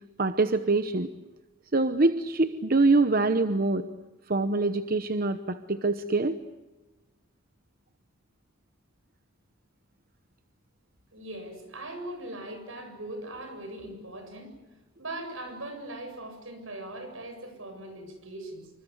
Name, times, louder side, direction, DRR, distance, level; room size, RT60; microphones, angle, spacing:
voice 1, 0.2-1.1 1.7-3.9 4.3-6.4, right 3 dB, 45° right, 9 dB, 1.0 m, -24 dB
voice 2, 11.1-14.5 15.0-18.7, right 1 dB, 75° right, 6 dB, 7.4 m, -40 dB
27.0 x 24.5 x 8.2 m, 1.1 s
head